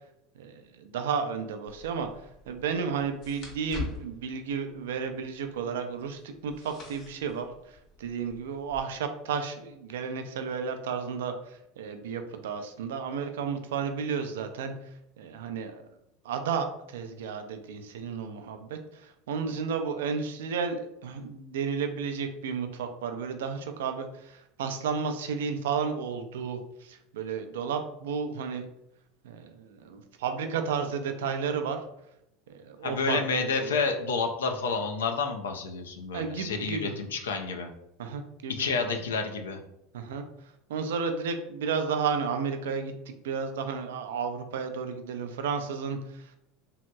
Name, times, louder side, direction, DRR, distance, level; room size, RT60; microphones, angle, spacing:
voice 1, 0.4-2.1 2.5-14.7 15.2-15.8 16.2-28.6 29.2-31.8 32.5-33.7 36.1-36.9 38.0-38.9 39.9-40.2 40.7-46.4, right 6 dB, 80° right, 6 dB, 0.4 m, -32 dB
sound 1, 1.7-8.8, left 3 dB, 45° left, 0.9 m, -45 dB
voice 2, 32.8-37.7 38.5-39.6, left 4 dB, 85° left, 5 dB, 0.4 m, -29 dB
2.9 x 2.7 x 2.2 m, 0.82 s
hypercardioid pair, 85°, 0 cm